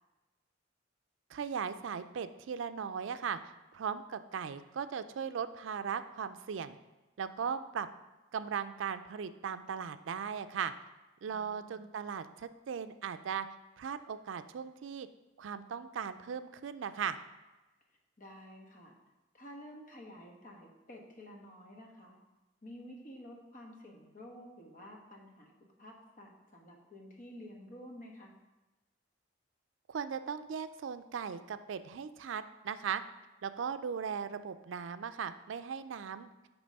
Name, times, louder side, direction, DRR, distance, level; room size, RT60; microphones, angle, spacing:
voice 1, 1.3-3.4 3.7-6.8 7.2-7.9 8.3-10.7 11.2-13.5 13.8-15.1 15.4-17.2 29.9-33.0 33.4-36.3, right 7 dB, 80° right, 11 dB, 0.4 m, -38 dB
voice 2, 11.3-11.8 18.2-19.0 19.3-22.2 22.6-25.5 25.8-28.3, equal, 45° left, 0 dB, 1.2 m, -51 dB
8.7 x 3.0 x 5.2 m, 1.1 s
head